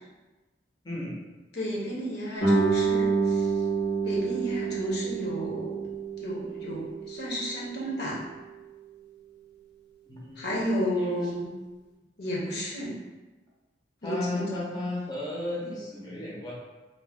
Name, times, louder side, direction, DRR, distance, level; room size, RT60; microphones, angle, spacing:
voice 1, 0.8-1.2 10.1-10.5 11.0-11.1 14.0-16.5, left 1 dB, 25° left, -6 dB, 0.5 m, -34 dB
voice 2, 1.5-3.5 4.0-5.8 6.2-8.2 10.4-11.5 12.2-12.9 14.0-14.5, equal, 60° left, -4 dB, 0.7 m, -32 dB
Guitar, 2.4-7.8, right 4 dB, 90° left, 1.0 m, -28 dB
2.5 x 2.1 x 3.3 m, 1.2 s
head